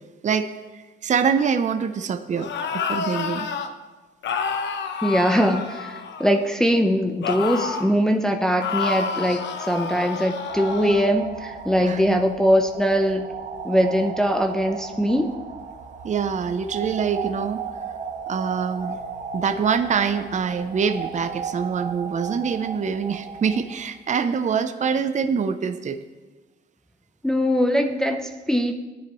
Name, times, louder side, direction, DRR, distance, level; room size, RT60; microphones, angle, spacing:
voice 1, 1.0-3.5 11.8-12.2 16.0-17.6 18.3-19.0 19.3-26.0, right 6 dB, 35° right, 9 dB, 0.7 m, -25 dB
sound 1, 2.3-3.7 4.2-6.5 7.2-7.9 8.6-11.1, left 5 dB, 65° left, 1.0 m, -29 dB
voice 2, 5.0-13.3 13.6-15.3 27.2-28.7, equal, 5° left, 3 dB, 0.8 m, -21 dB
sound 2, 10.5-23.8, right 5 dB, 55° right, 1.8 m, -35 dB
16.0 x 10.0 x 3.1 m, 1.2 s
cardioid pair, 90°, 20 cm